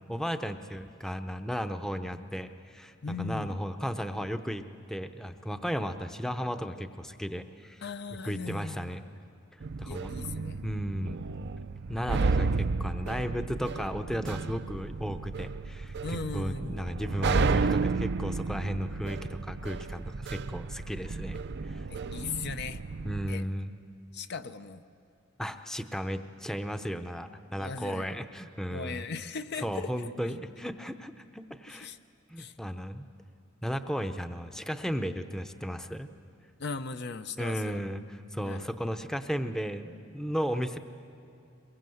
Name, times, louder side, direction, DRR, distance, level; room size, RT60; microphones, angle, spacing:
voice 1, 0.1-4.6 4.9-7.8 8.2-9.0 9.8-10.1 10.6-11.2 11.9-21.9 23.0-23.7 25.4-29.1 29.6-31.9 32.3-33.1 33.6-36.1 37.4-40.8, equal, 5° left, 8 dB, 0.7 m, -35 dB
voice 2, 3.0-3.6 7.8-8.9 9.9-10.6 16.0-16.8 21.9-22.8 23.3-23.4 24.1-24.8 27.6-28.2 28.7-29.9 31.7-32.0 32.4-32.5 36.6-37.8 38.4-38.7, left 4 dB, 55° left, 10 dB, 0.7 m, -38 dB
sound 1, 9.6-23.3, right 4 dB, 55° right, 0.5 m, -32 dB
23.0 x 22.0 x 7.8 m, 2.6 s
head